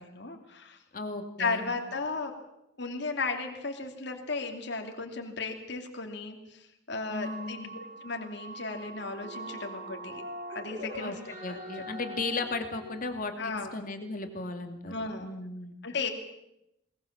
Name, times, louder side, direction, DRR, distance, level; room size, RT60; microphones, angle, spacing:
voice 1, 0.0-0.8 1.4-2.4 2.8-10.2 10.5-11.1 11.5-11.8 13.4-13.7 14.9-15.3 15.8-16.1, left 4 dB, 60° left, 3 dB, 2.5 m, -35 dB
voice 2, 0.9-1.7 7.1-7.8 11.0-11.1 11.4-14.9 15.2-15.7, left 3 dB, 45° left, 6 dB, 2.4 m, -36 dB
sound 1, 7.1-13.1, right 1 dB, 45° right, 6.0 m, -42 dB
21.0 x 20.5 x 7.3 m, 0.85 s
head